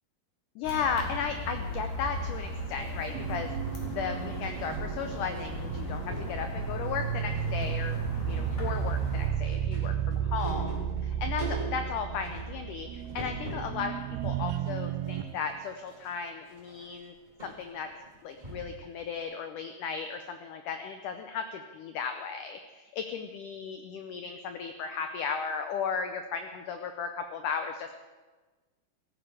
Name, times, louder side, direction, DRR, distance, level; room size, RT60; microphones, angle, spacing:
voice 1, 0.5-3.5 3.9-17.1 17.4-17.9 18.2-27.9, left 6 dB, 85° left, 7 dB, 1.8 m, -35 dB
sound 1, 0.6-9.3, equal, 45° left, 3.6 m, -37 dB
sound 2, 2.6-4.8 5.1-5.3 5.6-6.4 7.0-7.6 7.9-13.8 14.2-18.9 19.2-19.3, right 1 dB, 10° right, 2.7 m, -44 dB
sound 3, 3.1-15.4, right 10 dB, 75° right, 2.5 m, -33 dB
16.5 x 14.0 x 4.9 m, 1.3 s
omnidirectional pair, 4.7 m